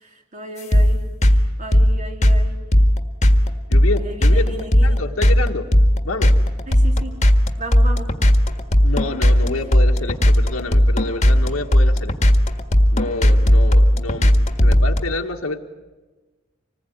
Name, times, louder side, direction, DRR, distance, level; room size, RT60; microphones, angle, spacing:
voice 1, 0.0-2.6 4.0-5.0 6.7-7.2 7.6-8.1, right 1 dB, 35° right, 3 dB, 3.3 m, -34 dB
sound 1, 0.7-15.0, equal, 35° left, 1.7 m, -14 dB
voice 2, 3.7-4.5 4.8-5.7 6.0-6.3 8.8-12.1 12.9-15.6, left 2 dB, 90° left, 2 dB, 1.7 m, -28 dB
26.0 x 20.0 x 9.3 m, 1.3 s
head